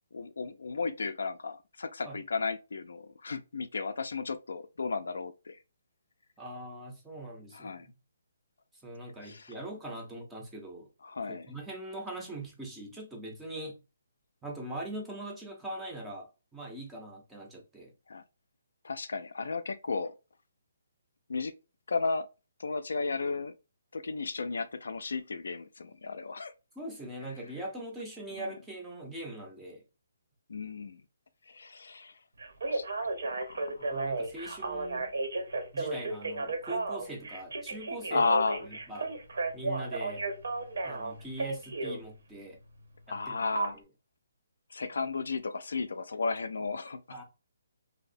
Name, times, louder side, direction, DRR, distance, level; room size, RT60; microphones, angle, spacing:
voice 1, 0.1-5.6 7.5-7.9 9.2-9.5 11.0-11.5 18.1-18.2 18.8-20.1 21.3-21.5 21.9-22.3 22.6-23.5 23.9-26.5 28.4-28.5 30.5-31.0 31.5-32.1 32.7-34.1 38.1-38.6 43.1-43.8 44.7-47.0, left 4 dB, 80° left, 0.3 m, -34 dB
voice 2, 6.4-7.9 8.8-10.9 11.5-13.8 14.4-17.9 26.8-29.8 33.8-35.1 35.7-38.3 38.6-39.1 39.5-40.3 40.8-42.6 43.1-43.8 47.1-47.2, right 1 dB, 5° right, 0.4 m, -42 dB
Telephone, 32.4-42.0 43.6-43.7, right 3 dB, 80° right, 0.7 m, -33 dB
2.6 x 2.0 x 2.4 m
hypercardioid pair, 175°, 0 cm